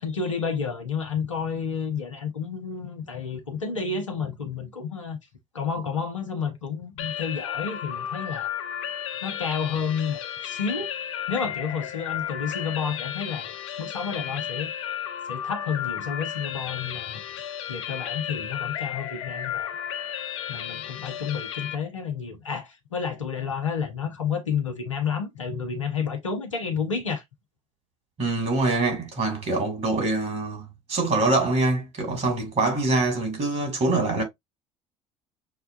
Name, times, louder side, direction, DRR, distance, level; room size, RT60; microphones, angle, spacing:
voice 1, 0.0-5.2 5.5-8.5 9.2-10.9 11.3-14.7 15.3-17.2 17.7-19.8 20.5-27.2, left 6 dB, 90° left, 0.9 m, -30 dB
sound 1, 7.0-21.8, left 10 dB, 70° left, 0.5 m, -33 dB
voice 2, 28.2-34.2, right 2 dB, 45° right, 2.6 m, -24 dB
6.6 x 2.3 x 2.5 m
figure-of-eight pair, 60°, 16 cm